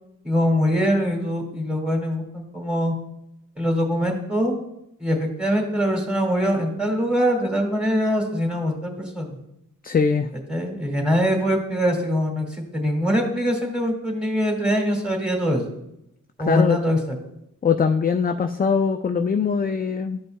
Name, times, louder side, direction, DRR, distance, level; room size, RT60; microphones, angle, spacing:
voice 1, 0.2-2.9 3.6-4.5 5.0-9.4 10.5-12.5 12.7-15.6 16.4-17.2, equal, 5° right, 2 dB, 1.9 m, -23 dB
voice 2, 9.8-10.3 16.4-16.8 17.6-20.2, left 6 dB, 30° left, 7 dB, 0.4 m, -21 dB
12.0 x 5.4 x 2.2 m, 0.82 s
cardioid pair, 55°, 33 cm